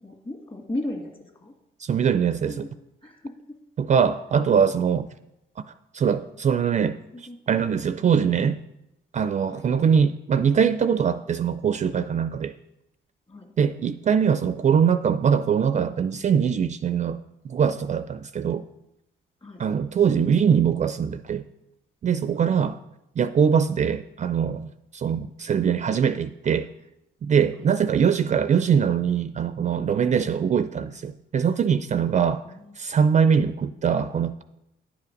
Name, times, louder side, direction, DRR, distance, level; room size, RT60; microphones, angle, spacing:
voice 1, 0.0-1.5 2.5-2.7 3.0-3.6 7.1-7.7 9.5-9.7 13.3-13.5 19.4-19.6 22.4-22.5 27.6-27.7 32.4-32.8, left 1 dB, 30° left, 3 dB, 2.0 m, -36 dB
voice 2, 1.8-2.7 3.8-5.1 5.9-8.6 9.1-12.5 13.6-17.2 17.4-18.6 19.6-21.4 22.0-22.8 23.2-26.7 27.2-32.4 32.8-34.4, right 7 dB, 35° right, 12 dB, 0.4 m, -22 dB
10.0 x 5.7 x 5.2 m, 0.88 s
cardioid pair, 90°, 20 cm